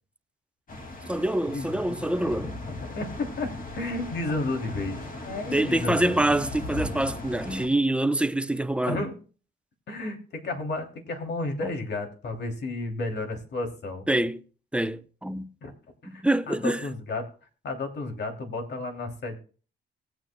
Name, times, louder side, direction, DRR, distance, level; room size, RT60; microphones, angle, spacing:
sound 1, 0.7-7.7, left 2 dB, 45° left, 2.4 m, -38 dB
voice 1, 1.1-2.5 5.5-9.0 11.6-11.7 14.1-14.4 14.7-15.5 16.2-16.8, right 1 dB, 5° right, 0.7 m, -25 dB
voice 2, 2.6-6.2 8.9-9.2 9.9-14.1 15.6-15.7 16.1-17.3 17.6-19.4, left 2 dB, 60° left, 2.9 m, -32 dB
19.0 x 8.8 x 2.3 m
cardioid pair, 90°, 20 cm